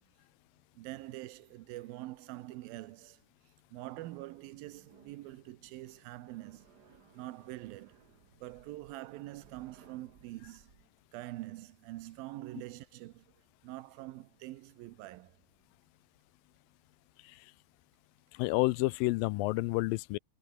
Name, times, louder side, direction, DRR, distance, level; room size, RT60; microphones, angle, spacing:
voice 1, 0.8-3.2 3.7-6.7 7.1-8.1 8.4-10.7 11.1-13.2 13.6-15.4, right 17 dB, 85° right, 2.7 m, -45 dB
sound 1, 4.7-10.9, right 6 dB, 40° right, 1.6 m, -62 dB
voice 2, 18.3-20.2, left 21 dB, 85° left, 2.3 m, -30 dB
omnidirectional pair, 4.1 m